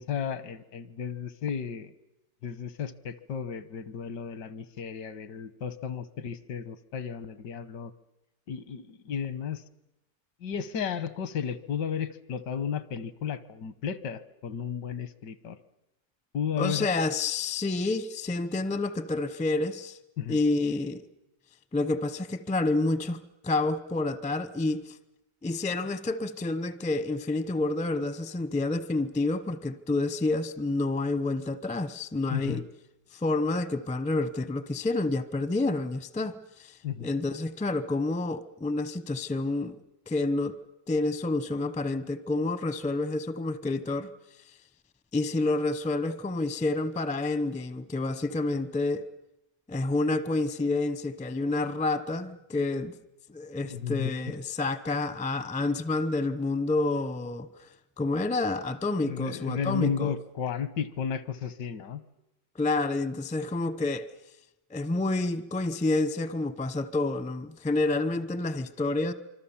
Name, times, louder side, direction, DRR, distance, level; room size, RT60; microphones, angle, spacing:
voice 1, 0.0-1.9 2.4-7.9 8.5-9.6 10.4-15.6 16.3-16.9 20.2-20.4 32.3-32.6 36.8-37.1 53.7-54.1 59.0-62.0, left 7 dB, 80° left, 1.7 m, -33 dB
voice 2, 16.6-20.0 20.3-21.1 21.7-23.2 23.4-24.9 25.4-32.6 33.1-39.8 40.1-40.6 40.9-44.1 45.1-49.1 49.7-52.9 53.3-57.7 58.0-60.1 62.6-64.1 64.7-69.1, left 2 dB, 10° left, 0.5 m, -29 dB
25.5 x 25.5 x 7.2 m
omnidirectional pair, 1.8 m